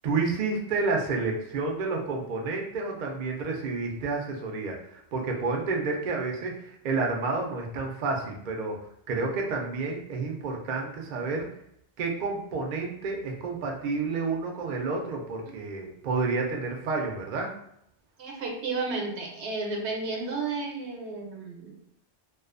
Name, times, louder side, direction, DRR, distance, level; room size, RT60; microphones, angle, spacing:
voice 1, 0.0-8.8 9.1-11.5 12.0-17.5, right 3 dB, 55° right, 1 dB, 0.5 m, -30 dB
voice 2, 18.2-21.8, right 3 dB, 80° right, 0 dB, 0.9 m, -32 dB
2.4 x 2.3 x 2.4 m, 0.73 s
omnidirectional pair, 1.1 m